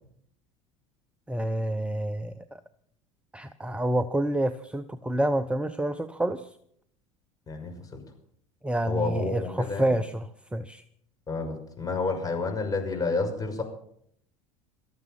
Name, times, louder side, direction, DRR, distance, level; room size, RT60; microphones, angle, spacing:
voice 1, 1.3-2.6 3.3-6.5 8.6-10.8, right 1 dB, 5° right, 11 dB, 0.8 m, -28 dB
voice 2, 7.5-8.0 8.9-9.9 11.3-13.6, left 3 dB, 20° left, 3 dB, 5.8 m, -30 dB
18.5 x 13.5 x 5.6 m, 0.68 s
figure-of-eight pair, 75°, 17 cm